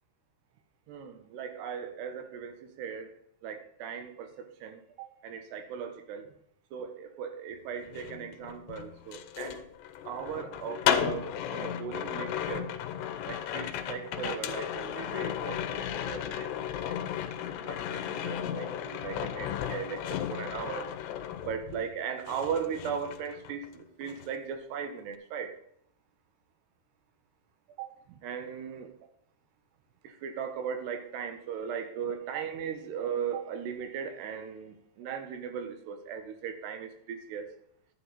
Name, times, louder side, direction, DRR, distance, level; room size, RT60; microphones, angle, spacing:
voice 1, 0.9-3.1 3.4-6.3 6.7-9.6 10.0-12.7 13.3-20.9 21.4-25.6 27.8-29.0 30.0-37.5, right 7 dB, 75° right, 7 dB, 3.3 m, -38 dB
sound 1, 7.8-22.0 22.3-23.7 24.0-24.4, left 10 dB, 80° left, 3.0 m, -34 dB
11.0 x 9.8 x 4.1 m, 0.69 s
omnidirectional pair, 4.9 m